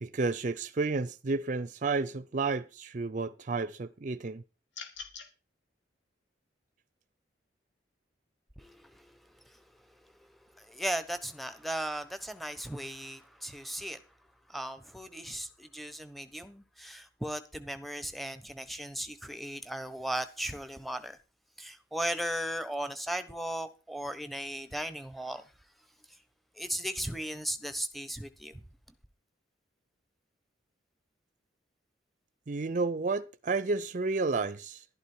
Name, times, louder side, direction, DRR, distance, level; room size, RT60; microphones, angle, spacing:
voice 1, 0.0-4.4 32.5-34.9, right 3 dB, 45° right, 0.5 m, -31 dB
sound 1, 4.7-5.3, left 5 dB, 80° left, 2.6 m, -43 dB
voice 2, 8.6-9.1 10.5-14.0 14.5-21.2 21.6-25.4 26.6-28.6, right 1 dB, ahead, 1.1 m, -37 dB
12.0 x 11.5 x 4.5 m
head